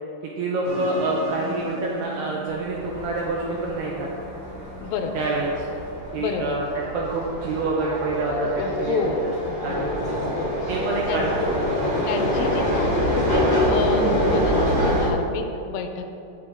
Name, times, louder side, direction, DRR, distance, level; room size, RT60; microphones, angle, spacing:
voice 1, 0.2-4.1 5.1-5.7 6.1-6.7 6.9-9.3 9.6-9.9 10.7-12.1, right 2 dB, 90° right, -3 dB, 2.3 m, -27 dB
sound 1, 0.6-5.9, right 2 dB, 45° right, 3.2 m, -38 dB
sound 2, 2.5-15.1, equal, 35° left, 1.7 m, -25 dB
voice 2, 4.8-5.2 6.2-6.6 8.4-10.6 11.1-11.3 12.1-16.1, left 6 dB, 85° left, 6 dB, 3.2 m, -30 dB
16.0 x 6.6 x 3.7 m, 2.9 s
omnidirectional pair, 5.9 m